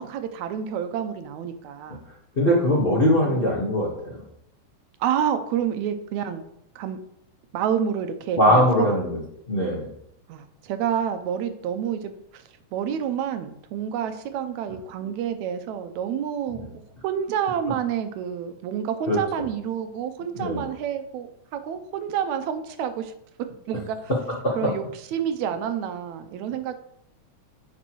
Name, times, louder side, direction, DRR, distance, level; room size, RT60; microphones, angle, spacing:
voice 1, 0.0-2.0 3.0-3.7 5.0-6.5 6.8-7.0 7.5-9.0 10.3-12.4 12.7-16.7 17.0-23.1 23.7-24.0 24.6-26.7, right 8 dB, 80° right, 8 dB, 2.0 m, -29 dB
voice 2, 2.4-4.2 8.4-9.2 9.5-9.9 19.1-19.4 20.4-20.6 24.1-24.7, equal, 65° left, -4 dB, 0.5 m, -21 dB
10.0 x 5.5 x 3.0 m, 0.75 s
omnidirectional pair, 3.4 m